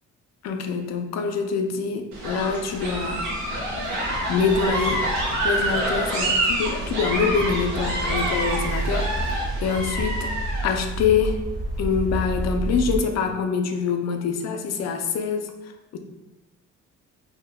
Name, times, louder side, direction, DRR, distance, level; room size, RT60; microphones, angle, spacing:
voice 1, 0.4-3.2 4.3-5.0 5.4-10.3 10.6-11.4 11.8-15.5 15.9-16.0, left 5 dB, 60° left, 4 dB, 0.5 m, -25 dB
sound 1, 2.1-10.7, right 1 dB, 80° right, 1.0 m, -27 dB
sound 2, 2.8-13.0, right 1 dB, 50° right, 1.0 m, -31 dB
3.5 x 2.1 x 2.2 m, 1.1 s
cardioid pair, 90°, 30 cm